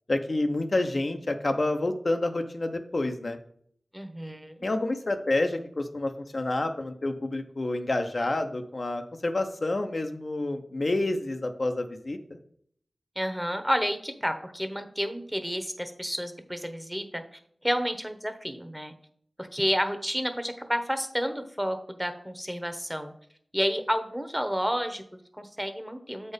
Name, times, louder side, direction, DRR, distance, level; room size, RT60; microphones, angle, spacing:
voice 1, 0.1-3.4 4.6-12.2, left 2 dB, 55° left, 5 dB, 0.7 m, -28 dB
voice 2, 3.9-4.6 13.1-18.9 19.4-23.1 23.5-26.3, equal, 5° right, 8 dB, 1.0 m, -30 dB
7.7 x 4.3 x 5.1 m, 0.63 s
wide cardioid pair, 45°, 0 cm